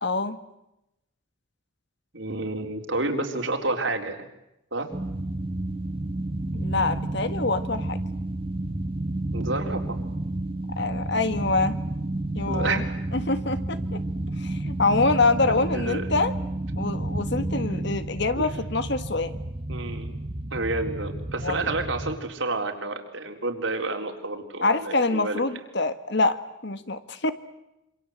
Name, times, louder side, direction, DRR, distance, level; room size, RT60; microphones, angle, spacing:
voice 1, 0.0-0.4 6.5-8.0 10.7-11.8 12.3-12.8 13.1-14.0 14.4-16.3 16.8-19.4 21.4-21.7 24.6-27.3, left 3 dB, 55° left, 11 dB, 1.7 m, -25 dB
voice 2, 2.1-4.3 4.7-4.9 9.3-10.0 12.5-12.8 15.7-16.1 18.4-18.5 19.7-20.1 20.5-25.4, right 2 dB, 65° right, 4 dB, 4.1 m, -30 dB
sound 1, 4.9-22.2, right 1 dB, 25° right, 1.4 m, -31 dB
27.0 x 26.0 x 8.1 m, 0.89 s
head